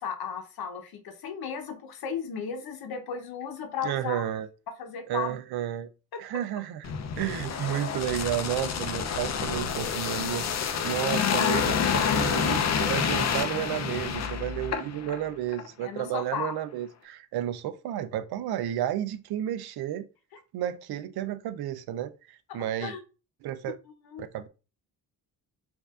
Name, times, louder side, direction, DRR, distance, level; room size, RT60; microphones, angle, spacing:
voice 1, 0.0-4.2 4.8-5.4 6.1-6.2 15.8-16.5 22.5-23.0 23.9-24.3, left 7 dB, 75° left, 0.9 m, -35 dB
voice 2, 3.8-4.5 5.1-5.9 6.2-6.8 7.2-20.1 20.5-22.9 23.4-23.8 24.2-24.5, right 11 dB, 90° right, 0.5 m, -32 dB
sound 1, 6.8-15.2 15.5-15.7, left 7 dB, 45° left, 0.5 m, -28 dB
4.4 x 2.6 x 2.4 m
wide cardioid pair, 150°, 37 cm